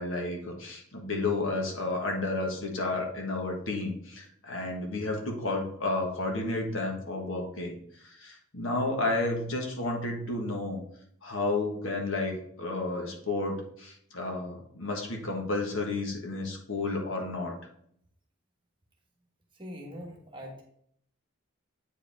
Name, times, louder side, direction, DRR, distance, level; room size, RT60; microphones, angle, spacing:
voice 1, 0.0-10.8 11.2-17.5, left 2 dB, 65° left, 1 dB, 1.4 m, -32 dB
voice 2, 19.6-20.6, equal, 25° right, 0 dB, 1.3 m, -42 dB
8.2 x 4.9 x 3.5 m, 0.67 s
head